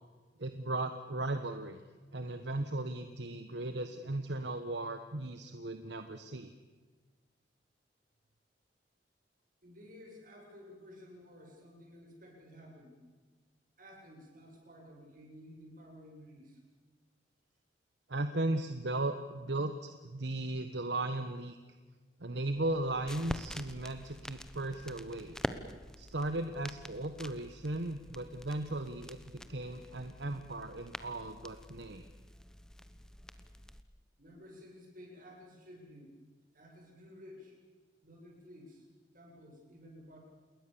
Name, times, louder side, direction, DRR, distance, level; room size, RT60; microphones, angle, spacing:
voice 1, 0.4-1.8 2.1-6.5 18.1-21.6 22.2-25.4 26.0-32.1, right 2 dB, 75° right, 8 dB, 1.3 m, -36 dB
voice 2, 9.6-12.9 13.8-16.6 34.2-36.2 36.5-37.6 38.0-38.8 39.1-40.2, left 1 dB, 50° right, 0 dB, 7.7 m, -53 dB
sound 1, 22.6-33.8, equal, 5° left, 1.1 m, -46 dB
28.5 x 21.0 x 7.1 m, 1.4 s
head